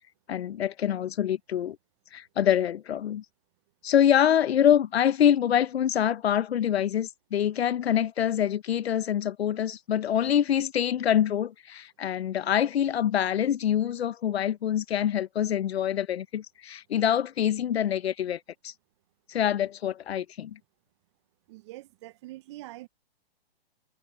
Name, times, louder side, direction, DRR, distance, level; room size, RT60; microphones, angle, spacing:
voice 1, 0.3-1.8 2.1-3.2 3.8-18.7 19.3-20.6, left 10 dB, 80° left, 0.7 m, -25 dB
voice 2, 21.5-22.9, right 17 dB, 30° right, 0.5 m, -44 dB
hypercardioid pair, 140°, 31 cm